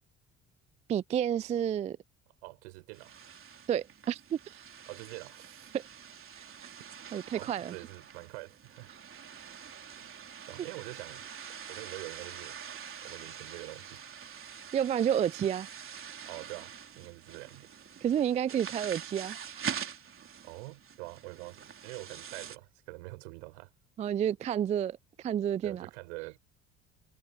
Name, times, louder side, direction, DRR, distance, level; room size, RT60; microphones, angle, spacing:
voice 1, 0.9-2.0 3.7-4.6 5.7-5.8 6.4-6.5 7.1-7.7 14.7-15.7 18.0-19.8 24.0-25.9, right 9 dB, 20° right, 0.3 m, -30 dB
voice 2, 2.4-3.1 4.9-5.7 7.3-8.9 10.0-10.1 10.5-12.6 13.0-14.0 16.2-17.7 20.4-23.7 25.6-26.4, right 26 dB, 65° right, 6.0 m, -45 dB
sound 1, 2.9-22.6, right 7 dB, 35° right, 4.1 m, -45 dB
figure-of-eight pair, 55°, 36 cm